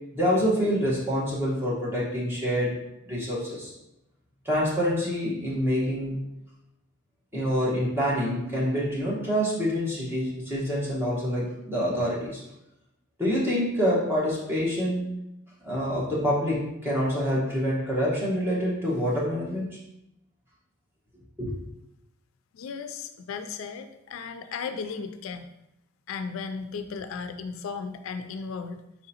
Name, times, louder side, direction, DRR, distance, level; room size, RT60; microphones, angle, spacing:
voice 1, 0.1-2.8 3.1-3.7 4.4-6.3 7.3-12.4 13.2-15.1 15.6-19.7 21.4-21.5, equal, 10° right, -6 dB, 1.1 m, -26 dB
voice 2, 22.5-25.5 26.1-28.8, left 5 dB, 80° left, 8 dB, 0.3 m, -35 dB
4.5 x 3.7 x 2.8 m, 0.86 s
head